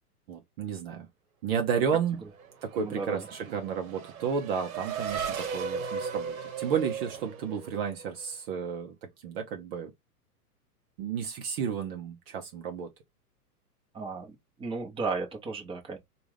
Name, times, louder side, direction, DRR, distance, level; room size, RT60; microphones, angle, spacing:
voice 1, 0.3-1.1 1.4-2.2 2.6-9.9 11.0-12.9, right 7 dB, 40° right, 0.9 m, -32 dB
Race car auto racing / Accelerating revving vroom, 2.1-8.2, right 6 dB, 60° right, 1.2 m, -37 dB
voice 2, 2.8-3.3 13.9-16.0, right 4 dB, 10° right, 1.1 m, -34 dB
4.8 x 2.5 x 3.3 m
figure-of-eight pair, 110°, 47 cm